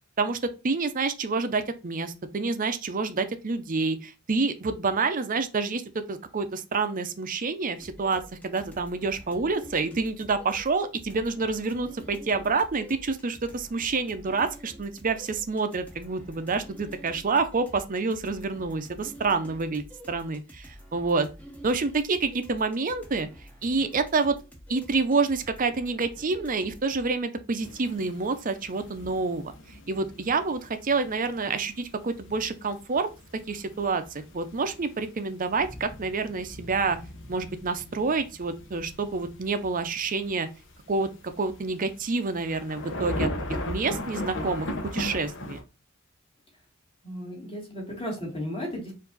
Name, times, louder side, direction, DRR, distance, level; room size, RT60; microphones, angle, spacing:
voice 1, 0.2-21.3 21.6-23.3 23.6-24.4 24.7-29.5 29.9-33.1 33.5-37.0 37.3-40.5 40.9-41.1 41.4-43.3 43.7-45.6, right 4 dB, 40° right, 0.6 m, -28 dB
sound 1, 7.7-27.2, equal, 5° left, 0.9 m, -48 dB
sound 2, 27.6-45.6, left 1 dB, 60° left, 1.0 m, -38 dB
voice 2, 47.0-48.9, equal, 30° left, 2.1 m, -34 dB
4.7 x 2.7 x 3.9 m
head